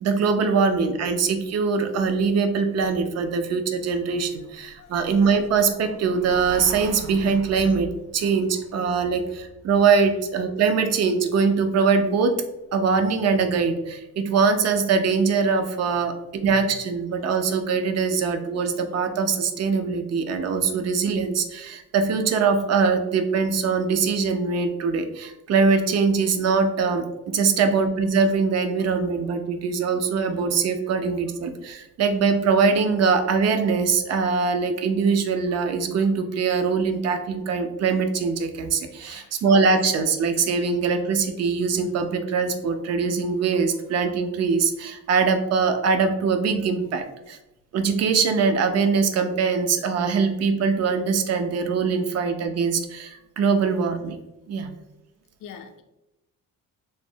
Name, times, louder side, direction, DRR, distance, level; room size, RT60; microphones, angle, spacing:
voice 1, 0.0-12.3 12.7-47.4 47.7-54.2 54.5-54.7, right 5 dB, 50° right, 7 dB, 0.5 m, -22 dB
voice 2, 55.4-55.8, left 7 dB, 65° left, 6 dB, 0.5 m, -43 dB
3.1 x 2.0 x 2.6 m, 0.95 s
cardioid pair, 90°, 34 cm